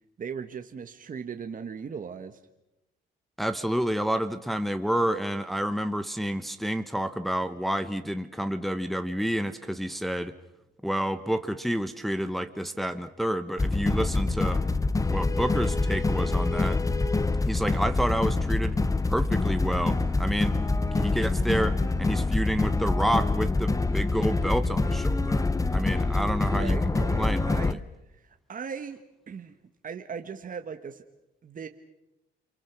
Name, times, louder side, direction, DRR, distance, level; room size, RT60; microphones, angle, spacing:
voice 1, 0.2-2.4 26.5-27.8 28.2-29.0 29.3-29.5 29.8-31.0 31.4-31.7, right 6 dB, 40° right, 6 dB, 1.4 m, -38 dB
voice 2, 3.4-10.3 10.8-14.6 15.1-16.8 17.5-18.7 19.1-20.6 20.9-25.4 25.7-27.8, equal, ahead, 8 dB, 1.2 m, -29 dB
sound 1, 13.6-27.7, left 3 dB, 15° left, 0.8 m, -26 dB
29.5 x 23.5 x 6.1 m, 0.94 s
cardioid pair, 90°, 20 cm